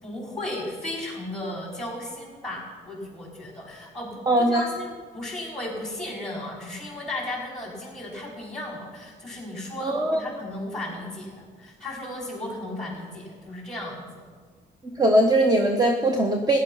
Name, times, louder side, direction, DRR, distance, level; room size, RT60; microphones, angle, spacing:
voice 1, 0.0-14.2, left 1 dB, 5° left, -2 dB, 5.2 m, -35 dB
voice 2, 4.3-4.6 9.8-10.4 14.8-16.6, right 1 dB, 20° right, 3 dB, 1.2 m, -21 dB
14.5 x 10.5 x 5.8 m, 1.6 s
cardioid pair, 90°, 20 cm